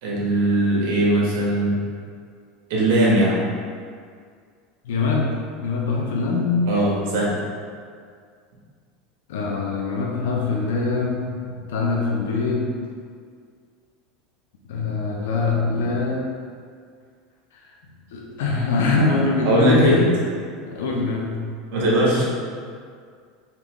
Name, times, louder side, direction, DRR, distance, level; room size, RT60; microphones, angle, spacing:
voice 1, 0.0-1.8 2.7-3.4 6.7-7.4 19.4-20.0 21.7-22.2, right 1 dB, 70° right, -5 dB, 1.5 m, -19 dB
voice 2, 4.8-5.3 5.6-6.6 9.3-11.4 11.7-12.7 14.7-16.2 17.5-17.6 18.1-20.0 20.6-21.4, left 3 dB, 90° left, -1 dB, 0.8 m, -23 dB
4.2 x 3.0 x 3.6 m, 2.1 s
supercardioid pair, 135°, 0 cm